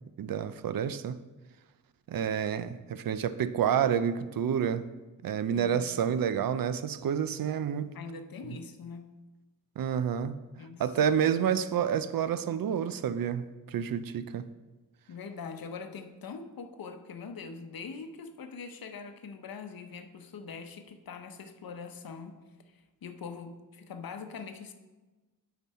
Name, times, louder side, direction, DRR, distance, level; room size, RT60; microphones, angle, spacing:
voice 1, 0.2-1.2 2.1-4.9 5.2-7.9 9.8-10.3 10.8-14.5, right 8 dB, 70° right, 13 dB, 0.5 m, -29 dB
voice 2, 5.5-6.1 7.9-9.1 10.6-10.8 11.1-11.5 15.1-22.4 22.7-24.7, left 5 dB, 75° left, 7 dB, 0.8 m, -43 dB
8.9 x 6.0 x 4.2 m, 1.2 s
wide cardioid pair, 180°, 36 cm